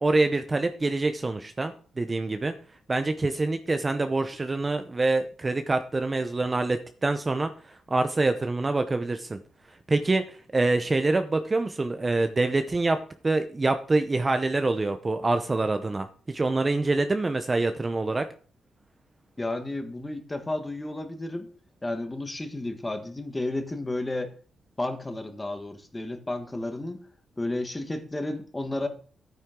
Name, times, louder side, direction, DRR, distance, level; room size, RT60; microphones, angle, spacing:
voice 1, 0.0-2.5 2.9-9.4 9.9-13.0 13.2-18.3, right 2 dB, 20° right, 8 dB, 0.7 m, -26 dB
voice 2, 19.4-21.5 21.8-24.3 24.8-27.0 27.4-28.9, left 2 dB, 15° left, 7 dB, 1.4 m, -32 dB
12.0 x 9.4 x 3.7 m, 0.41 s
cardioid pair, 130°, 0 cm